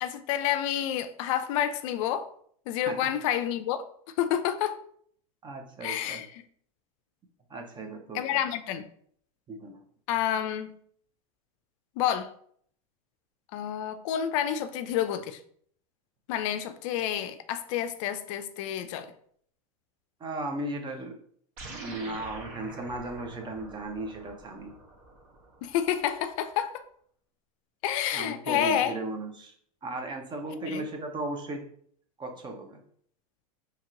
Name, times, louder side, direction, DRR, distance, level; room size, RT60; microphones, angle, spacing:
voice 1, 0.0-2.3 2.7-3.8 4.2-4.8 5.8-6.3 8.1-8.8 10.1-10.8 12.0-12.3 13.5-15.4 16.3-19.1 25.6-26.8 27.8-28.9 30.6-30.8, left 10 dB, 60° left, 10 dB, 0.4 m, -29 dB
voice 2, 5.4-6.2 7.5-8.5 9.5-9.8 20.2-21.2 21.8-24.8 28.1-29.5 29.8-31.6 32.2-32.8, right 2 dB, 25° right, 4 dB, 0.6 m, -36 dB
sound 1, 21.6-26.2, right 2 dB, 55° right, 1.1 m, -45 dB
2.9 x 2.9 x 3.7 m, 0.62 s
hypercardioid pair, 110°, 19 cm